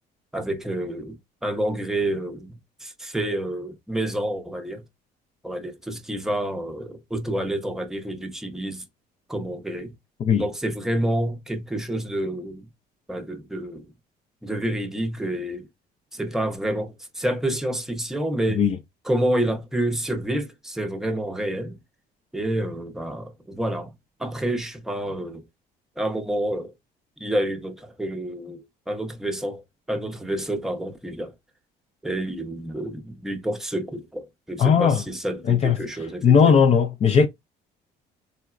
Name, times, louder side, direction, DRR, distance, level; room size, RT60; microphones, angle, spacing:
voice 1, 0.3-4.8 5.4-8.8 9.3-9.9 10.4-12.7 13.1-13.9 14.4-15.7 16.1-18.6 19.1-21.8 22.3-23.9 24.2-25.4 26.0-26.7 27.2-29.6 29.9-31.3 32.0-36.5, right 1 dB, 5° right, 0.6 m, -28 dB
voice 2, 34.6-35.0 35.5-35.8 36.2-37.3, left 6 dB, 40° left, 0.4 m, -17 dB
3.7 x 2.0 x 2.3 m
cardioid pair, 110°, 17 cm